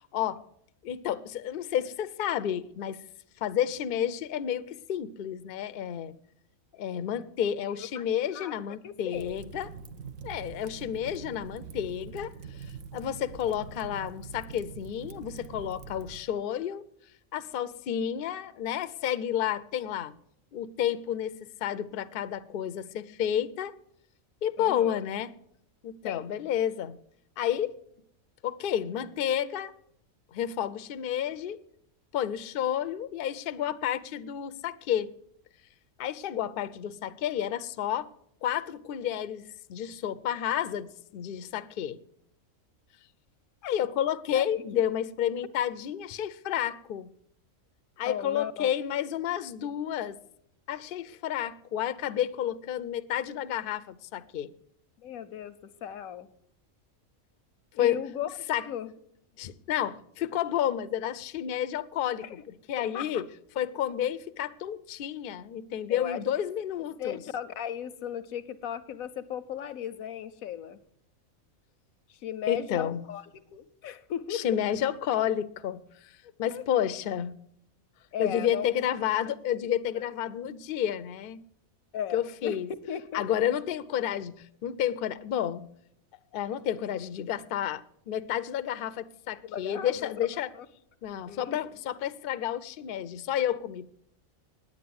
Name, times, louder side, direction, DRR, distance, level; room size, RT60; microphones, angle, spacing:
voice 1, 0.8-3.0 3.4-6.1 6.7-9.7 10.2-12.3 12.9-16.9 17.3-20.1 20.5-23.8 24.4-25.3 25.8-27.0 27.4-27.7 28.4-29.7 30.3-31.6 32.1-35.1 36.0-38.1 38.4-42.0 43.6-47.1 48.0-50.2 50.7-54.5 57.8-58.0 58.5-58.7 59.4-63.3 63.6-67.2 72.5-73.0 74.3-76.1 76.4-77.3 78.2-81.4 82.1-82.7 83.1-85.7 86.3-90.5 91.0-93.9, left 10 dB, 55° left, 0.6 m, -31 dB
voice 2, 7.7-8.5 8.8-9.4 24.6-25.0 26.0-26.3 41.1-41.2 44.3-44.4 44.7-44.8 48.0-48.7 55.0-56.3 57.7-58.3 58.7-58.9 62.2-62.4 62.9-63.2 65.9-66.2 67.0-70.8 72.1-74.6 76.5-76.6 78.1-78.7 79.2-79.3 79.8-80.1 81.9-82.6 82.9-83.2 89.4-90.1 90.5-90.7 91.3-91.6, left 9 dB, 90° left, 1.2 m, -37 dB
Fire, 9.1-16.2, right 6 dB, 70° right, 1.1 m, -44 dB
9.8 x 8.7 x 9.4 m
omnidirectional pair, 1.4 m